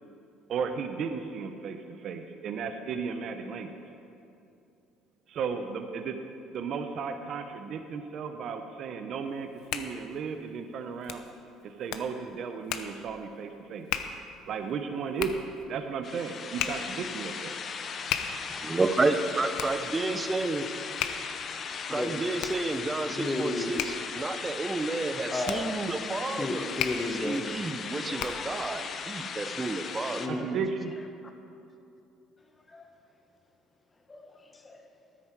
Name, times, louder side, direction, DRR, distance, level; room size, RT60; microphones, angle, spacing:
voice 1, 0.5-3.7 5.3-6.2 6.5-11.2 11.6-13.9 14.5-15.4 15.7-17.6 30.3-30.9, right 6 dB, 55° right, 7 dB, 0.8 m, -34 dB
Hands, 9.3-28.6, left 9 dB, 75° left, 0.7 m, -38 dB
sound 1, 16.0-30.3, left 6 dB, 45° left, 0.8 m, -38 dB
voice 2, 18.5-20.7 21.9-26.7 27.2-30.2, right 3 dB, 20° right, 9 dB, 0.8 m, -30 dB
voice 3, 23.1-23.7 25.3-25.7 26.2-27.6 27.9-28.9 30.0-30.5 32.7-32.8 34.1-34.8, left 2 dB, 20° left, 4 dB, 1.3 m, -34 dB
13.5 x 9.8 x 4.7 m, 2.6 s
cardioid pair, 100°, 0 cm